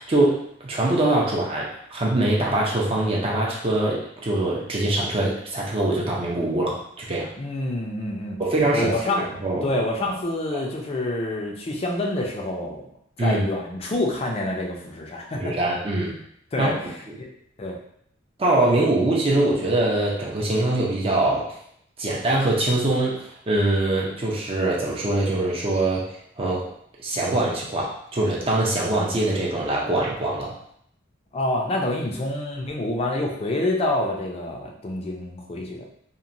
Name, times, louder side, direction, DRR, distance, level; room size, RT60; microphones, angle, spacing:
voice 1, 0.0-7.3 8.4-9.7 10.5-10.6 13.2-13.4 15.4-16.2 16.6-16.7 18.4-21.6 22.0-26.7 27.0-30.6, right 2 dB, 30° right, -3 dB, 0.5 m, -23 dB
voice 2, 7.4-8.4 8.7-12.8 13.2-15.5 16.5-16.7 17.2-17.3 17.6-17.8 31.3-35.8, left 1 dB, 30° left, 0 dB, 0.4 m, -27 dB
2.9 x 2.1 x 2.5 m, 0.69 s
head